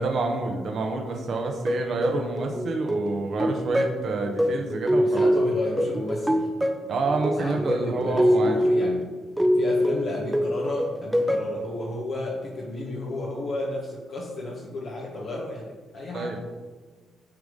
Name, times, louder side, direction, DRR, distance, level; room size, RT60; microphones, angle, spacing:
voice 1, 0.0-5.3 6.9-8.6 16.1-16.4, right 3 dB, 55° right, 3 dB, 1.1 m, -28 dB
sound 1, 1.7-11.6, equal, 10° right, 0.9 m, -25 dB
voice 2, 4.7-6.5 7.4-9.1 9.5-16.3, left 2 dB, 60° left, -4 dB, 1.5 m, -32 dB
9.1 x 4.8 x 5.3 m, 1.4 s
figure-of-eight pair, 40°, 0 cm